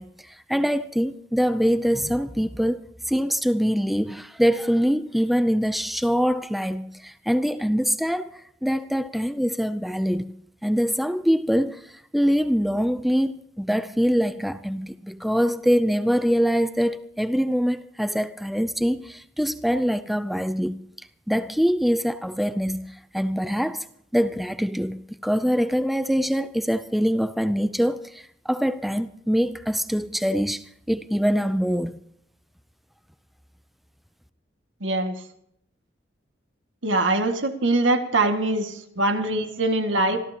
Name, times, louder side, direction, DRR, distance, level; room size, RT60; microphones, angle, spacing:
voice 1, 0.0-10.4 10.6-20.9 21.3-23.9 24.1-32.0, equal, ahead, 0.5 m, -24 dB
voice 2, 34.8-35.2 36.8-40.2, right 2 dB, 90° right, 2.0 m, -23 dB
26.0 x 14.5 x 2.9 m
head